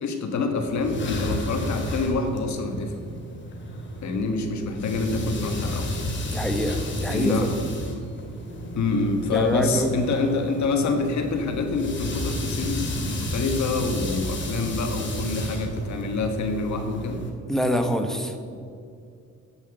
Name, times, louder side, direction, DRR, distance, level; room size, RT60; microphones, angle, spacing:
voice 1, 0.0-3.0 4.0-5.9 7.1-7.5 7.9-8.0 8.7-17.2, left 3 dB, 70° left, 5 dB, 1.6 m, -26 dB
sound 1, 0.6-17.3, equal, 40° left, 2.4 m, -32 dB
voice 2, 6.3-7.6 9.3-9.9 17.5-18.6, equal, ahead, 5 dB, 1.3 m, -26 dB
9.0 x 8.1 x 7.8 m, 2.4 s
cardioid pair, 90°, 30 cm